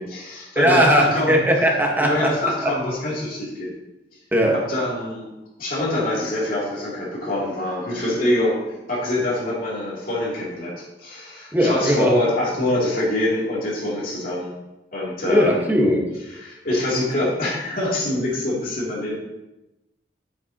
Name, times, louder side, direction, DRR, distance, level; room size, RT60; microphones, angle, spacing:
voice 1, 0.0-1.3 2.0-3.7 4.5-5.3 5.6-8.6 8.9-14.5 14.9-15.6 16.4-19.2, left 1 dB, 55° left, -5 dB, 3.1 m, -25 dB
voice 2, 0.5-2.7 4.3-4.6 11.5-12.1 15.2-16.0, equal, 10° right, -1 dB, 1.5 m, -19 dB
9.4 x 9.1 x 3.0 m, 0.97 s
head